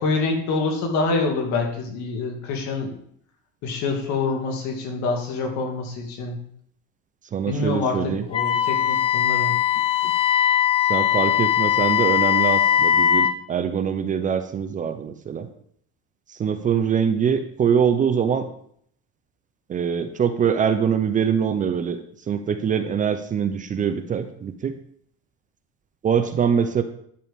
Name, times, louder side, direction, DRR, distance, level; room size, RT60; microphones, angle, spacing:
voice 1, 0.0-2.9 3.6-6.4 7.5-9.5, left 3 dB, 65° left, 2 dB, 2.5 m, -26 dB
voice 2, 7.3-8.3 10.0-10.1 10.9-15.5 16.3-18.5 19.7-22.0 22.3-24.8 26.0-26.8, right 7 dB, 25° right, 9 dB, 0.6 m, -23 dB
Wind instrument woodwind instrument, 8.3-13.4, left 9 dB, 20° left, 0.4 m, -20 dB
11.0 x 6.8 x 3.7 m, 0.64 s
cardioid pair, 135°, 30 cm